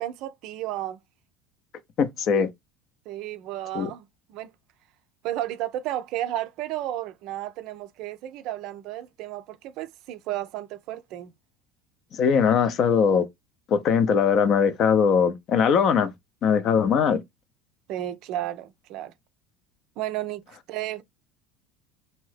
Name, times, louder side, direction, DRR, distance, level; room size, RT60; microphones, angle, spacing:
voice 1, 0.0-1.0 3.1-4.5 5.2-11.3 17.9-19.1 20.0-21.0, right 13 dB, 50° right, 0.3 m, -33 dB
voice 2, 2.0-2.5 3.7-3.9 12.2-13.2 13.7-16.1 16.4-17.2, left 6 dB, 45° left, 0.5 m, -21 dB
2.7 x 2.7 x 3.2 m
figure-of-eight pair, 70°, 0 cm